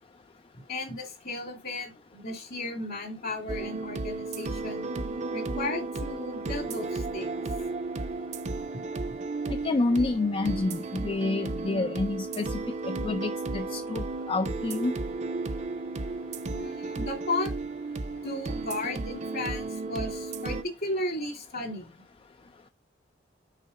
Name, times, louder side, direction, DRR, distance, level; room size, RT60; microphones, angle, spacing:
voice 1, 0.7-4.9 5.3-7.3 16.5-17.5 18.2-21.9, left 2 dB, 55° left, 2.7 m, -35 dB
sound 1, 3.5-20.6, right 3 dB, 40° right, 0.6 m, -34 dB
voice 2, 9.6-12.5 12.9-14.9, left 2 dB, 30° left, 0.4 m, -28 dB
6.6 x 4.7 x 5.2 m
head